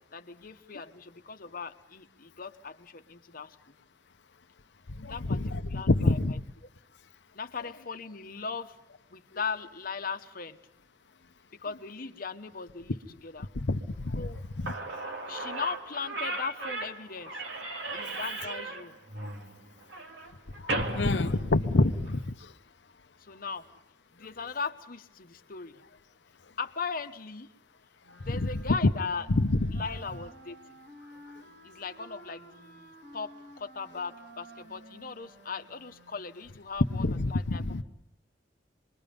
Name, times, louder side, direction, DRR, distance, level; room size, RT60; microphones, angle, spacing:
voice 1, 0.1-3.6 5.1-5.4 5.7-6.4 7.3-8.8 9.1-10.6 11.6-13.5 14.2-14.4 15.3-17.4 17.9-19.0 23.3-23.7 24.1-25.8 26.6-27.5 28.1-29.3 29.7-30.6 31.6-37.0 37.3-37.8, left 5 dB, 55° left, 8 dB, 1.1 m, -38 dB
voice 2, 5.0-6.3 13.5-14.3 14.6-14.7 20.6-22.2 28.2-28.5 28.8-28.9 29.4-29.8 36.9-37.8, left 2 dB, 75° left, 10 dB, 0.8 m, -27 dB
Slam / Squeak, 14.4-14.5 14.7-22.1, right 2 dB, 85° right, 2.1 m, -36 dB
Wind instrument woodwind instrument, 28.0-36.7, right 2 dB, 65° right, 3.1 m, -52 dB
26.5 x 22.0 x 5.3 m, 0.83 s
head